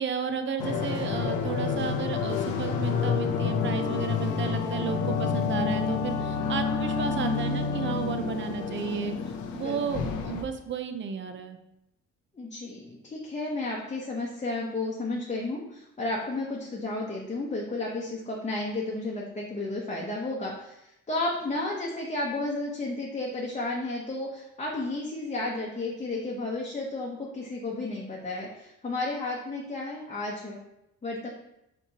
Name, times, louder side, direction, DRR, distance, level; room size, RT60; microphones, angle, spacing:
voice 1, 0.0-9.1 9.5-11.6, right 7 dB, 40° right, 8 dB, 0.6 m, -33 dB
sound 1, 0.6-10.4, left 5 dB, 75° left, 0.6 m, -29 dB
voice 2, 7.1-7.5 9.6-10.1 12.3-30.6 31.0-31.3, left 2 dB, 25° left, -3 dB, 0.8 m, -32 dB
4.3 x 4.2 x 2.9 m, 0.87 s
cardioid pair, 90°, 30 cm